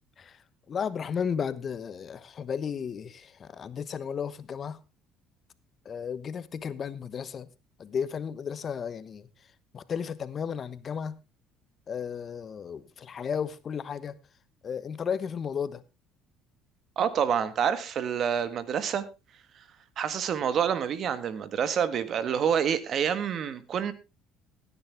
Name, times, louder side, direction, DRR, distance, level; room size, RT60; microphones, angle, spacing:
voice 1, 0.2-4.8 5.8-7.5 7.8-9.3 9.7-11.2 11.9-14.2 14.6-15.8, left 7 dB, 45° left, 1.1 m, -34 dB
voice 2, 16.9-19.0 20.0-23.9, right 8 dB, 55° right, 1.6 m, -27 dB
16.5 x 9.8 x 3.5 m
supercardioid pair, 85°, 0 cm